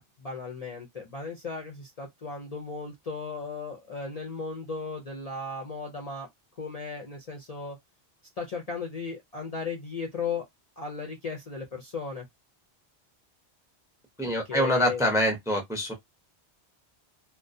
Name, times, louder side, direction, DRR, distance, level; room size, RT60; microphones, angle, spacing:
voice 1, 0.0-6.3 6.6-7.8 8.4-10.5 10.8-12.3 14.5-15.1, left 4 dB, 45° left, 0.5 m, -35 dB
voice 2, 14.2-15.9, equal, 5° right, 0.5 m, -25 dB
2.3 x 2.1 x 2.5 m
omnidirectional pair, 1.1 m